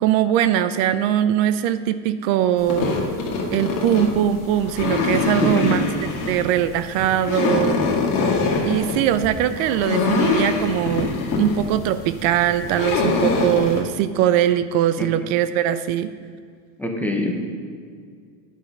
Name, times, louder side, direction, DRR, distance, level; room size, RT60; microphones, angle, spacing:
voice 1, 0.0-2.9 3.5-5.8 6.3-7.8 8.6-16.1, right 11 dB, 60° right, 13 dB, 0.5 m, -21 dB
sound 1, 2.6-13.8, left 4 dB, 45° left, 1.8 m, -24 dB
voice 2, 5.4-5.8 15.0-15.1 16.8-17.3, left 1 dB, 5° left, 1 dB, 0.6 m, -23 dB
9.1 x 6.3 x 5.3 m, 2.1 s
supercardioid pair, 150°, 46 cm